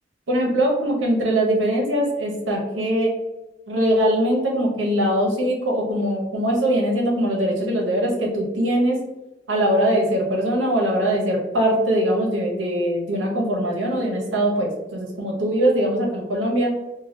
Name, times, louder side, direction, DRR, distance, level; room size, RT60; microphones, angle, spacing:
voice 1, 0.3-3.1 3.7-9.0 9.5-16.7, right 1 dB, 80° right, -1 dB, 0.7 m, -21 dB
3.1 x 2.2 x 2.6 m, 1.0 s
head